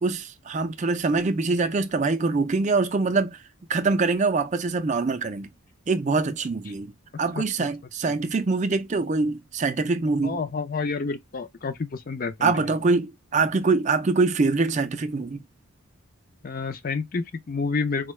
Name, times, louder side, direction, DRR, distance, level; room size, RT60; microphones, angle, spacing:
voice 1, 0.0-3.4 3.7-5.5 5.9-10.4 12.4-15.4, right 3 dB, 35° right, 0.4 m, -24 dB
voice 2, 10.2-12.5 16.4-18.1, left 4 dB, 40° left, 0.4 m, -29 dB
4.3 x 2.2 x 3.1 m
head